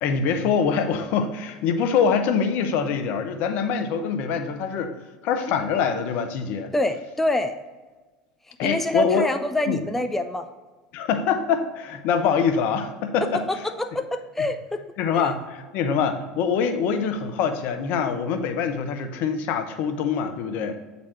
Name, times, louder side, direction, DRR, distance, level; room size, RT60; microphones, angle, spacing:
voice 1, 0.0-4.9 5.2-6.7 8.6-9.3 9.7-9.8 10.9-13.4 15.0-20.8, left 6 dB, 60° left, 8 dB, 0.8 m, -24 dB
voice 2, 6.7-7.5 8.5-10.5 13.3-14.8 15.1-15.3, left 1 dB, 5° left, 7 dB, 0.5 m, -26 dB
8.7 x 4.1 x 4.5 m, 1.3 s
hypercardioid pair, 85°, 3 cm